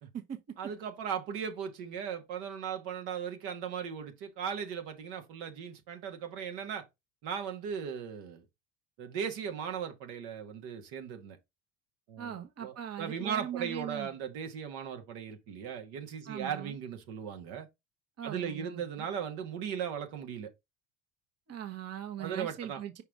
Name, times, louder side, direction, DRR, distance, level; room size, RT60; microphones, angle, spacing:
voice 1, 0.6-6.9 7.2-8.4 9.0-11.4 12.1-17.7 18.2-20.5 22.2-22.8, right 7 dB, 80° right, 1.6 m, -37 dB
voice 2, 12.2-14.1 16.3-16.7 18.2-19.1 21.5-23.0, right 10 dB, 40° right, 1.2 m, -40 dB
5.4 x 4.9 x 3.5 m
supercardioid pair, 90°, 38 cm